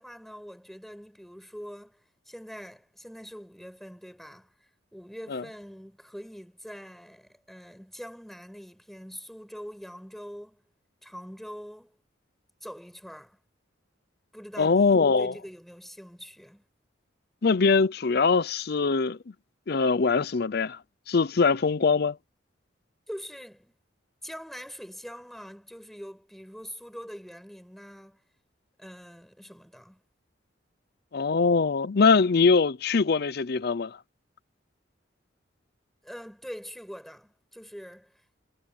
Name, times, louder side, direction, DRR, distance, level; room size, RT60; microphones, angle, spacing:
voice 1, 0.0-10.6 11.0-12.0 12.6-13.4 14.3-16.6 23.1-23.7 24.2-28.2 28.8-30.0 36.0-38.2, equal, ahead, 7.1 m, -44 dB
voice 2, 14.6-15.3 17.4-19.2 19.7-20.8 21.1-22.2 31.1-34.0, left 4 dB, 55° left, 0.6 m, -22 dB
head